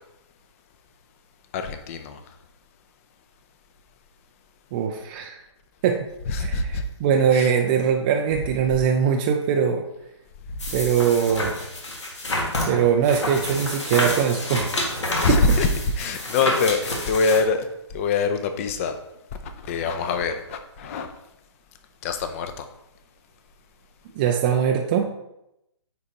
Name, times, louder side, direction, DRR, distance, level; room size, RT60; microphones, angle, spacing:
voice 1, 1.5-2.2 6.3-6.8 7.3-7.5 15.2-15.7 16.0-17.7 17.9-19.0 19.4-21.1 22.0-22.6, left 4 dB, 30° left, 8 dB, 0.6 m, -24 dB
voice 2, 4.7-5.4 5.8-6.1 6.4-9.8 10.7-11.5 12.6-14.6 15.3-15.4 24.2-25.1, right 7 dB, 20° right, 2 dB, 0.3 m, -21 dB
sound 1, 10.6-17.4, left 1 dB, 70° left, 1.8 m, -28 dB
9.6 x 4.1 x 2.8 m, 0.85 s
hypercardioid pair, 145°, 15 cm